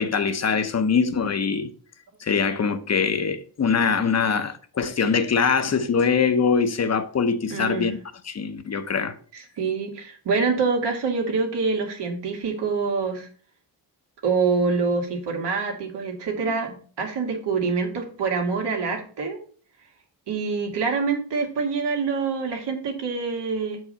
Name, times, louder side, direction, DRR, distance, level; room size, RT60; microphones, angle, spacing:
voice 1, 0.0-1.7 2.2-8.0 8.2-9.1, left 5 dB, 40° left, 0.8 m, -23 dB
voice 2, 7.5-7.9 9.3-13.3 14.2-19.4 20.3-23.8, right 4 dB, 85° right, 2.1 m, -26 dB
6.9 x 4.8 x 5.4 m
wide cardioid pair, 115°, 40 cm